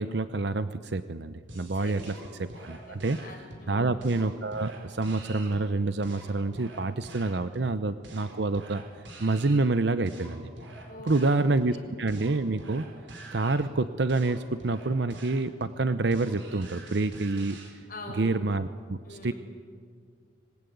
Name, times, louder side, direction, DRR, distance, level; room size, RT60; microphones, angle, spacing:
voice 1, 0.0-2.1 2.4-3.2 3.7-8.8 9.2-10.5 11.0-12.8 13.3-17.6 18.2-19.3, right 3 dB, 65° right, 12 dB, 0.7 m, -27 dB
voice 2, 1.5-2.3 2.6-4.1 10.9-11.9 17.9-18.3 19.0-19.3, left 1 dB, 50° left, 1 dB, 6.1 m, -44 dB
sound 1, 1.5-17.7, right 2 dB, 90° right, 4.4 m, -47 dB
25.5 x 20.5 x 9.4 m, 2.1 s
head